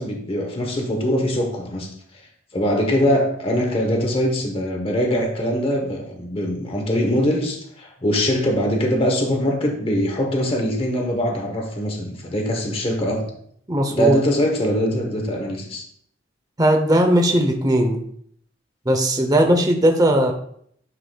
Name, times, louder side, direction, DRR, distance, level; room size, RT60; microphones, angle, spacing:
voice 1, 0.0-1.9 2.5-13.2 13.9-15.8, equal, 30° left, 1 dB, 0.9 m, -22 dB
voice 2, 13.7-14.2 16.6-18.0 18.9-20.3, right 1 dB, 20° right, 4 dB, 0.7 m, -18 dB
9.8 x 4.9 x 2.3 m, 0.66 s
head